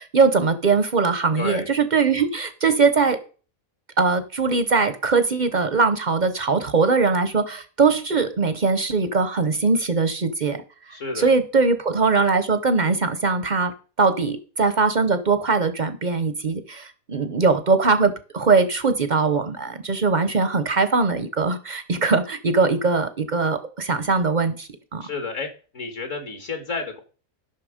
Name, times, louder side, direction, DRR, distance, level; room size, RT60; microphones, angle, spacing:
voice 1, 0.0-3.2 4.0-10.6 10.9-13.7 14.0-25.0, right 4 dB, 40° right, 11 dB, 0.7 m, -21 dB
voice 2, 1.4-1.7 10.9-11.3 25.0-27.0, left 4 dB, 60° left, 6 dB, 1.9 m, -31 dB
12.5 x 5.9 x 5.0 m, 0.38 s
omnidirectional pair, 1.5 m